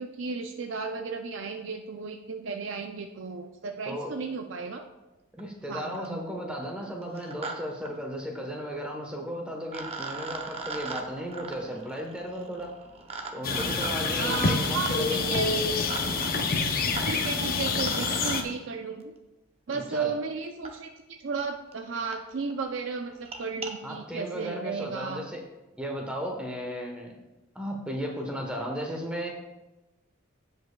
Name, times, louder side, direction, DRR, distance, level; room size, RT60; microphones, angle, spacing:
voice 1, 0.0-4.9 5.6-6.2 14.1-15.5 17.1-19.1 19.7-25.3, right 4 dB, 60° right, 5 dB, 0.5 m, -34 dB
voice 2, 5.4-12.7 13.3-15.3 19.7-20.1 23.8-25.4 25.8-27.2 27.5-29.4, equal, 5° right, 1 dB, 1.0 m, -35 dB
sound 1, 5.4-5.5 5.7-6.2 7.0-7.5 7.8-7.9 9.2-9.3 9.7-18.4 19.7-19.8 20.6-20.7 21.4-21.5 21.7-21.8 22.1-22.2 22.5-22.7 23.1-23.7, right 4 dB, 30° right, 0.7 m, -40 dB
sound 2, 13.4-18.4, left 4 dB, 45° left, 0.6 m, -27 dB
16.0 x 5.4 x 2.3 m, 1.1 s
head